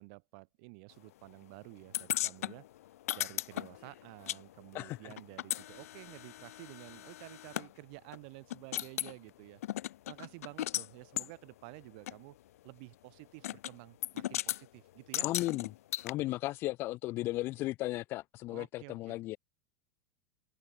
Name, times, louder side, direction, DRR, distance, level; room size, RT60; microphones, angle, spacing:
voice 1, 0.0-2.6 3.1-9.6 10.1-12.4 12.6-15.3 18.5-19.2, right 33 dB, 40° right, 6.1 m, -51 dB
sound 1, 1.9-4.4 4.7-7.7 8.1-8.2 8.5-9.1 9.6-10.9 11.2-11.3 12.1-12.2 13.4-13.7 14.0-14.6 15.1-16.1, left 14 dB, 75° left, 2.5 m, -36 dB
voice 2, 15.2-15.7 16.0-19.4, left 17 dB, 30° left, 1.8 m, -35 dB
supercardioid pair, 180°, 8 cm